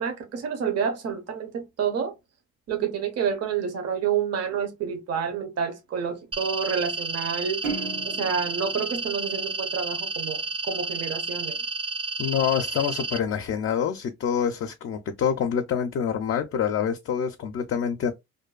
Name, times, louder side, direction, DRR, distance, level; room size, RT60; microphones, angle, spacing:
voice 1, 0.0-2.1 2.7-7.6 8.0-11.6, right 7 dB, 55° right, 0.7 m, -29 dB
sound 1, 6.3-13.2, right 3 dB, 20° right, 0.3 m, -31 dB
sound 2, 7.6-10.2, right 4 dB, 85° right, 1.1 m, -36 dB
voice 2, 12.2-18.1, left 8 dB, 50° left, 0.4 m, -26 dB
2.6 x 2.2 x 2.3 m
cardioid pair, 90°, 30 cm